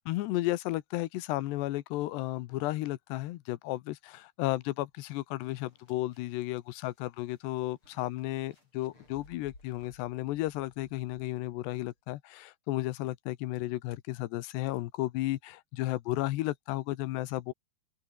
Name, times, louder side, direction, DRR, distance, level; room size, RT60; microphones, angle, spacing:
voice 1, 0.1-17.5, left 17 dB, 85° left, 3.1 m, -33 dB
sound 1, 4.9-5.0 5.4-11.8, left 2 dB, 30° left, 8.3 m, -60 dB
open air
omnidirectional pair, 4.8 m